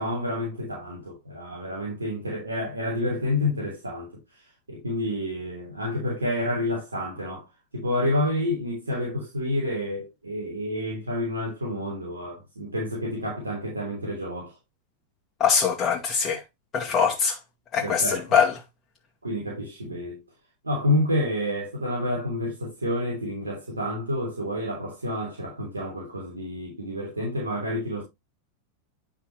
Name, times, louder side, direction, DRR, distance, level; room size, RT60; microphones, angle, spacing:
voice 1, 0.0-4.1 4.7-7.4 7.7-14.6 17.8-18.4 19.2-20.2 20.6-28.0, left 1 dB, 75° right, 3.2 m, -29 dB
voice 2, 15.4-16.4 16.7-17.4 17.7-18.5, left 6 dB, 30° left, 1.6 m, -22 dB
10.0 x 5.5 x 3.1 m
figure-of-eight pair, 90°, 0 cm